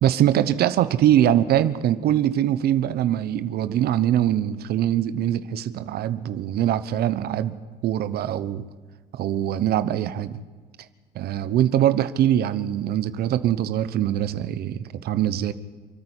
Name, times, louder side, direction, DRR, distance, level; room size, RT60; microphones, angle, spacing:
voice 1, 0.0-7.6 7.8-8.6 9.1-10.4 11.1-15.5, right 11 dB, 65° right, 1.0 m, -22 dB
28.0 x 9.8 x 9.8 m
cardioid pair, 110°, 17 cm